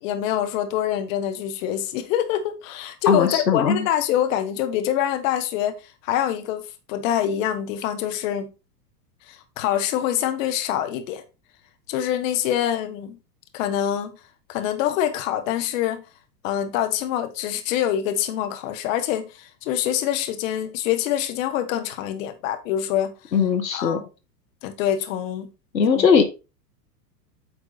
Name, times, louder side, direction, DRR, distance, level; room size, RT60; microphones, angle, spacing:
voice 1, 0.0-6.6 6.9-8.5 9.3-11.2 11.9-13.2 13.5-14.1 14.5-16.0 16.4-23.1 23.7-24.0 24.6-25.5 25.9-26.1, left 10 dB, 50° left, 1.3 m, -25 dB
voice 2, 3.1-3.9 23.3-24.0 25.7-26.2, left 6 dB, 85° left, 1.5 m, -19 dB
8.6 x 4.4 x 4.1 m
hypercardioid pair, 105°, 49 cm